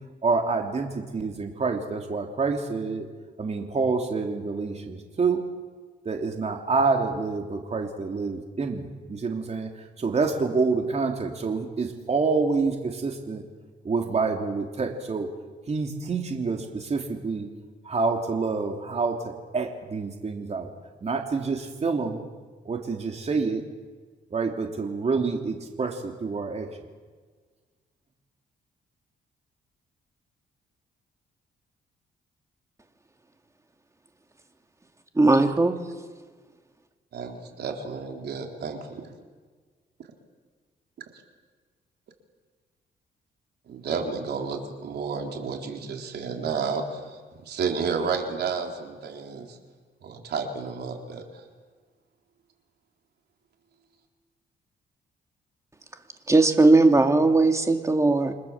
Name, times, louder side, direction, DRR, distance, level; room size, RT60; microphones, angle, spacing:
voice 1, 0.2-3.1 3.4-5.4 6.0-13.4 13.8-15.3 15.6-17.5 17.8-20.7 21.0-22.2 22.6-23.7 24.3-26.7, right 4 dB, 40° right, 3 dB, 3.3 m, -27 dB
voice 2, 35.2-35.7 56.3-58.3, right 2 dB, 15° right, 5 dB, 2.8 m, -18 dB
voice 3, 37.1-39.1 43.7-47.2 47.5-49.6 50.0-51.4, right 5 dB, 70° right, 3 dB, 4.1 m, -31 dB
29.5 x 25.0 x 7.5 m, 1.5 s
cardioid pair, 95°, 18 cm